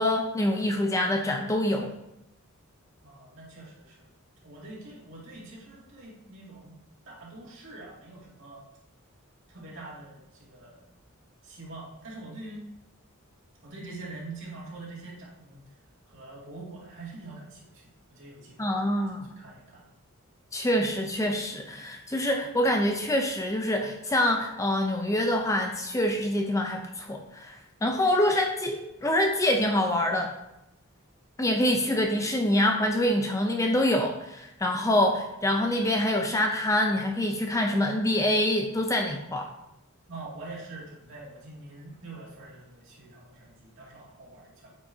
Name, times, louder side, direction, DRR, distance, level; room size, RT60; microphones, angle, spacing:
voice 1, 0.0-1.9 18.6-19.3 20.5-30.3 31.4-39.5, left 1 dB, 15° left, 2 dB, 0.5 m, -25 dB
voice 2, 3.0-4.1 4.4-6.8 7.1-8.7 9.5-10.8 11.4-12.6 13.6-15.6 16.1-17.8 18.1-18.7 19.4-19.8 40.1-44.7, right 2 dB, 60° right, -5 dB, 2.4 m, -44 dB
8.5 x 5.6 x 2.8 m, 0.84 s
head